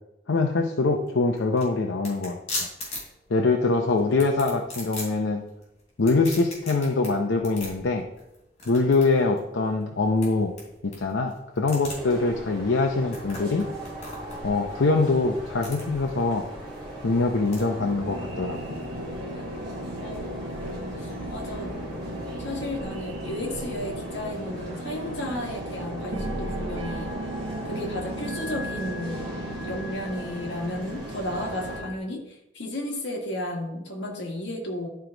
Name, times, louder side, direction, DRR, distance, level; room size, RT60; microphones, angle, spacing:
voice 1, 0.3-2.4 3.3-5.5 6.0-8.0 8.7-10.5 10.8-13.7 14.4-16.4 17.0-18.8, left 3 dB, 90° left, 2 dB, 0.7 m, -24 dB
sound 1, 0.9-17.6, left 2 dB, 40° left, 3.2 m, -40 dB
sound 2, 11.9-31.8, equal, 25° right, 2.8 m, -39 dB
sound 3, 17.8-32.0, right 1 dB, 90° right, 0.9 m, -36 dB
voice 2, 20.0-21.7 22.4-27.1 27.6-34.9, left 1 dB, 75° left, 0 dB, 1.7 m, -34 dB
11.5 x 4.7 x 3.9 m, 0.88 s
head